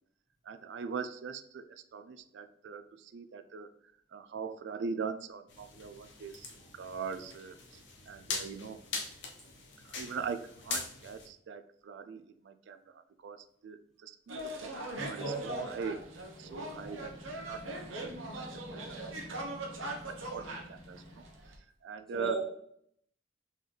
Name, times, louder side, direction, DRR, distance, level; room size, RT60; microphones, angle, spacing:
voice 1, 0.4-3.7 4.1-8.8 9.8-16.0 16.4-19.8 20.1-21.6 21.8-22.3, right 5 dB, 65° right, 9 dB, 0.3 m, -42 dB
sound 1, 5.5-11.3, left 4 dB, 65° left, 0.7 m, -42 dB
sound 2, 14.3-21.6, right 1 dB, 85° right, 0.9 m, -41 dB
voice 2, 15.0-15.7 16.8-16.9 22.1-22.4, right 2 dB, ahead, -8 dB, 1.7 m, -37 dB
sound 3, 15.1-21.4, left 1 dB, 20° left, 0.5 m, -51 dB
4.0 x 3.8 x 3.2 m, 0.71 s
head